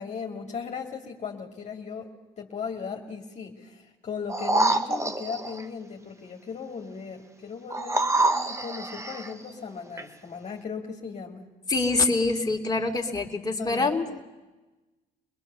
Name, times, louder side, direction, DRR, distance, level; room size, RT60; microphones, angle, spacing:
voice 1, 0.0-2.1 2.4-11.4 13.6-14.2, left 6 dB, 45° left, 0 dB, 2.5 m, -37 dB
sound 1, 4.3-5.6 7.7-9.3 10.0-10.1, right 2 dB, 20° right, 1.5 m, -26 dB
voice 2, 11.7-14.0, left 3 dB, 25° left, 1 dB, 3.0 m, -25 dB
24.0 x 20.5 x 6.9 m, 1.1 s
supercardioid pair, 80°, 16 cm